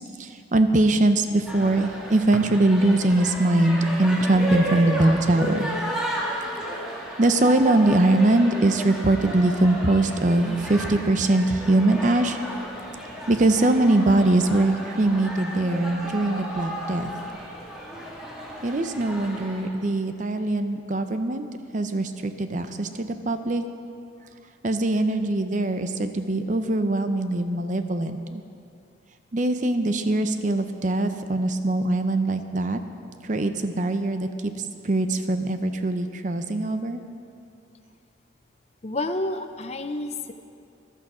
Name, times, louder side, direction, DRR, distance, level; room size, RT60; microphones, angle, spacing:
voice 1, 0.2-5.7 7.2-12.4 13.3-17.1 18.6-21.5 21.7-23.6 24.6-28.4 29.3-32.8 33.2-34.3 34.8-37.0, right 2 dB, 40° right, 9 dB, 0.6 m, -22 dB
sound 1, 1.5-19.7, equal, 5° right, 1.8 m, -33 dB
voice 2, 38.8-40.3, left 2 dB, 35° left, 8 dB, 0.5 m, -29 dB
14.5 x 12.0 x 5.0 m, 2.5 s
head